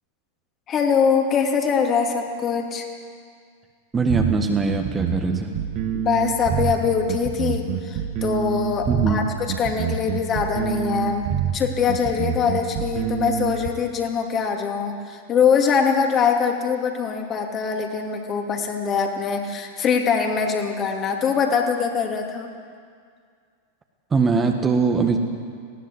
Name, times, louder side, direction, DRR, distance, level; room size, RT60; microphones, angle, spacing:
voice 1, 0.7-2.9 5.9-9.2 9.6-11.3 11.5-22.5, left 6 dB, 30° left, 2 dB, 2.7 m, -23 dB
voice 2, 3.9-5.6 8.9-9.2 24.1-25.2, right 4 dB, 20° right, 4 dB, 1.7 m, -21 dB
sound 1, 4.1-13.7, right 8 dB, 40° right, 1.6 m, -26 dB
19.5 x 17.0 x 7.9 m, 2.1 s
figure-of-eight pair, 90°, 0 cm